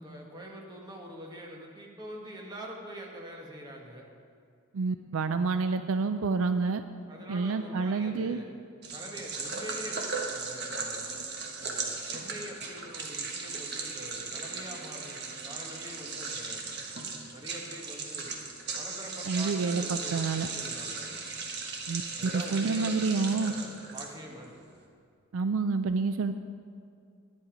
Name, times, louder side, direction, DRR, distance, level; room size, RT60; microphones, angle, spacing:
voice 1, 0.0-4.0 7.1-8.5 8.9-11.1 11.6-16.6 17.3-18.3 18.8-21.2 22.2-24.7, equal, 20° right, -1 dB, 1.3 m, -45 dB
voice 2, 4.7-6.8 7.3-8.4 19.3-20.5 21.9-23.5 25.3-26.3, right 4 dB, 65° right, 9 dB, 0.4 m, -28 dB
sound 1, 8.8-24.4, right 4 dB, 50° right, 1.3 m, -37 dB
11.0 x 9.6 x 5.0 m, 2.3 s
head